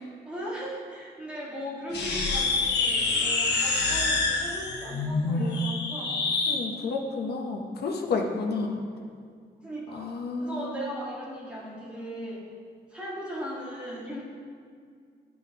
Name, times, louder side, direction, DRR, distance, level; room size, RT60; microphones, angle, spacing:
voice 1, 0.2-6.2 8.5-8.8 9.6-10.1 10.4-12.4 12.9-14.2, equal, 5° right, -7 dB, 1.6 m, -38 dB
sound 1, 1.9-6.6, left 3 dB, 90° left, 1.1 m, -26 dB
voice 2, 6.5-8.8 9.9-10.7, left 4 dB, 70° left, 2 dB, 0.8 m, -31 dB
11.0 x 5.5 x 2.8 m, 2.1 s
wide cardioid pair, 160°, 17 cm